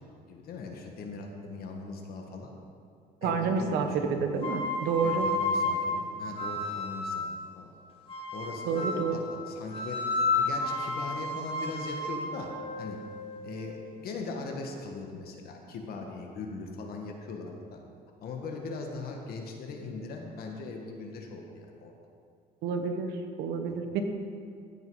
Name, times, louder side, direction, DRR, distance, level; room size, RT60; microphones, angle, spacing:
voice 1, 0.3-2.5 3.2-4.2 5.0-7.3 7.5-7.7 8.3-12.5 12.8-13.0 13.4-17.8 18.2-21.9 23.7-23.8, left 3 dB, 65° left, 2 dB, 1.3 m, -40 dB
voice 2, 3.2-5.3 8.7-9.2 22.6-23.1 23.4-24.0, right 5 dB, 85° right, 6 dB, 1.0 m, -29 dB
sound 1, 4.4-7.2 8.1-9.1 9.7-13.7, left 2 dB, 35° left, 2.0 m, -32 dB
15.5 x 5.5 x 4.7 m, 2.3 s
cardioid pair, 110°, 17 cm